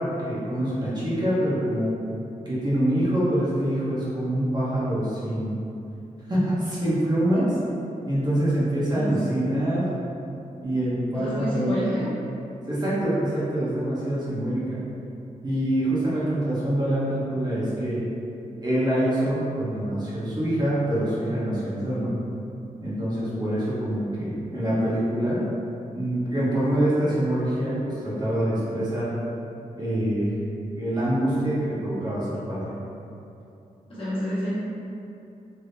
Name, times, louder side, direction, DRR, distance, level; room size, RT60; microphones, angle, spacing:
voice 1, 0.0-1.9 2.4-5.6 6.3-7.6 8.1-9.8 10.6-11.9 12.6-14.6 15.4-18.0 18.6-22.1 22.8-25.4 25.9-29.1 29.7-30.3 30.7-32.7, right 1 dB, 30° right, -9 dB, 0.9 m, -25 dB
voice 2, 8.9-9.3 11.1-12.1 33.9-34.5, equal, 40° left, -11 dB, 1.2 m, -28 dB
3.4 x 2.7 x 2.7 m, 2.8 s
wide cardioid pair, 100°, 14 cm